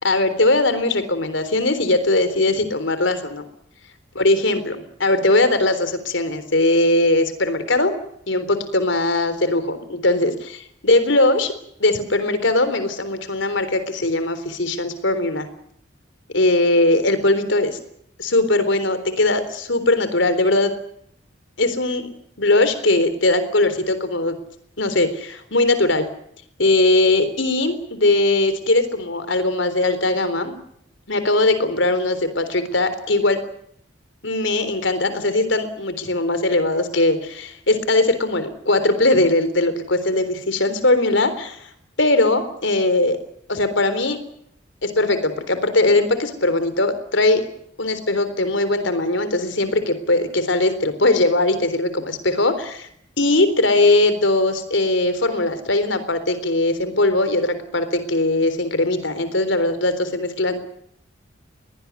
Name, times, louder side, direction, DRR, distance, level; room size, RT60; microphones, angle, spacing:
voice 1, 0.0-3.4 4.2-7.9 8.3-10.3 10.8-15.5 16.3-17.8 18.2-20.7 21.6-22.1 22.4-24.4 24.8-26.1 26.6-30.6 31.1-33.4 34.2-41.7 42.0-43.2 43.5-44.2 44.8-47.4 47.8-52.9 53.2-60.6, left 2 dB, 70° left, 11 dB, 3.7 m, -20 dB
22.0 x 18.5 x 9.5 m, 0.70 s
head